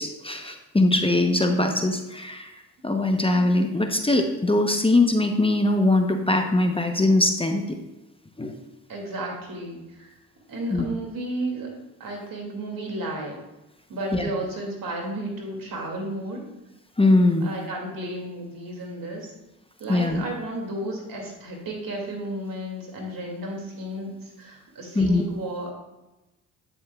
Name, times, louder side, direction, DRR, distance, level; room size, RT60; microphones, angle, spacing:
voice 1, 0.0-2.5 2.8-7.8 8.4-8.5 10.7-10.8 14.1-14.3 17.0-17.5 19.9-20.2 24.9-25.3, left 2 dB, 15° left, 4 dB, 0.9 m, -21 dB
voice 2, 8.9-10.1 10.5-11.7 12.0-13.4 13.9-16.5 17.4-19.3 19.8-25.7, right 1 dB, 60° right, 1 dB, 2.6 m, -33 dB
8.8 x 8.1 x 2.4 m, 1.0 s
supercardioid pair, 55°, 37 cm